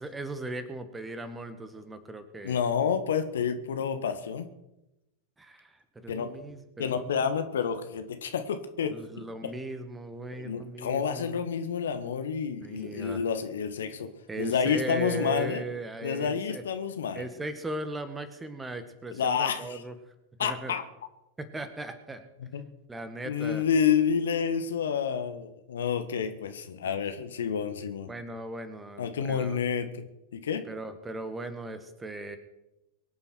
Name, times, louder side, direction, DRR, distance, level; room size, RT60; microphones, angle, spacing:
voice 1, 0.0-2.6 5.4-7.1 8.9-11.4 12.6-13.2 14.3-16.6 17.2-20.0 20.4-20.8 21.4-22.3 22.9-23.6 26.8-27.0 28.1-29.6 30.7-32.4, right 2 dB, 10° right, 9 dB, 1.8 m, -38 dB
voice 2, 2.4-4.5 6.1-6.3 6.8-8.9 10.4-14.1 14.4-15.6 16.0-17.2 19.1-19.8 20.4-20.8 22.5-22.6 23.2-28.1 29.0-30.0 30.3-30.6, left 7 dB, 65° left, 9 dB, 1.5 m, -29 dB
23.5 x 9.5 x 4.6 m, 0.91 s
figure-of-eight pair, 90°, 0 cm